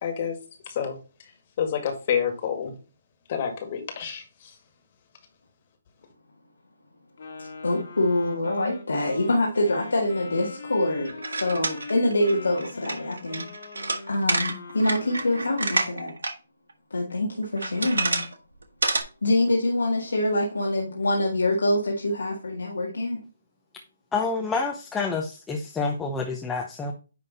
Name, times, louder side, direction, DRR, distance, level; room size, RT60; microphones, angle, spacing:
voice 1, 0.0-0.3 0.8-1.0 1.6-2.7 3.3-4.2, left 8 dB, 40° left, 6 dB, 2.0 m, -28 dB
Wind instrument woodwind instrument, 7.2-15.8, left 3 dB, 70° left, 2.2 m, -41 dB
voice 2, 7.4-13.4 14.1-16.1 16.9-18.2 19.2-23.2, left 1 dB, 85° left, -2 dB, 1.9 m, -25 dB
sound 1, 11.1-16.3 16.7-16.8 17.4-18.3 18.6-19.0, right 3 dB, 80° right, 1.3 m, -28 dB
voice 3, 24.1-26.9, left 4 dB, 10° left, 1 dB, 0.8 m, -28 dB
9.8 x 3.5 x 4.1 m, 0.33 s
hypercardioid pair, 145°, 0 cm